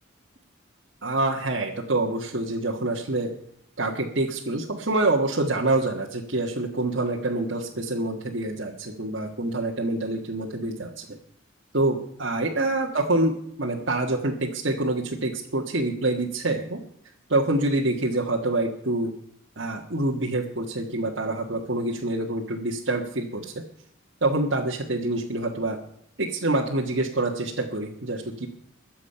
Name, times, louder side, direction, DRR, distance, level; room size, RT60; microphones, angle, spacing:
voice 1, 1.0-3.3 3.8-11.2 11.7-16.8 17.3-19.1 19.6-23.6 24.2-25.8 26.2-28.5, right 2 dB, 60° right, -2 dB, 1.5 m, -26 dB
22.0 x 7.4 x 5.6 m, 0.71 s
head